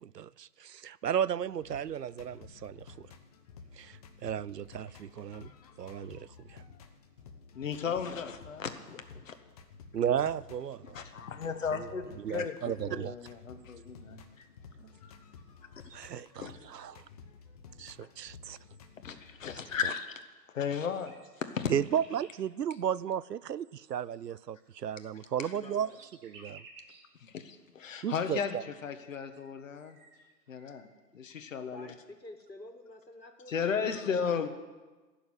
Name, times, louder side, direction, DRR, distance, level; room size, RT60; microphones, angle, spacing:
voice 1, 0.0-3.1 3.8-5.5 5.8-6.6 9.9-11.0 11.7-11.9 12.2-13.1 15.9-17.0 17.8-18.6 21.7-25.9 26.2-26.6 28.0-28.6, right 9 dB, 75° right, 19 dB, 0.6 m, -34 dB
sound 1, 1.4-19.9, left 5 dB, 25° left, 0.9 m, -53 dB
voice 2, 7.5-9.3 10.8-14.5 16.4-16.5 19.0-20.1 20.5-21.7 25.4-25.5 27.2-30.0 30.5-30.9 31.1-31.9 33.5-34.5, left 6 dB, 50° left, 8 dB, 1.5 m, -35 dB
sound 2, 13.6-14.2 15.0-15.2 15.4-16.5 17.2-17.3 18.1-18.2 18.4-19.1 20.2-20.3 20.6-22.4 23.6-27.1 27.7-27.8 28.9-29.0 29.2-31.0, right 4 dB, 35° right, 2.1 m, -58 dB
voice 3, 25.5-26.0 31.7-34.5, left 2 dB, 90° left, 5 dB, 2.1 m, -49 dB
15.5 x 7.1 x 9.5 m, 1.3 s
figure-of-eight pair, 130°, 49 cm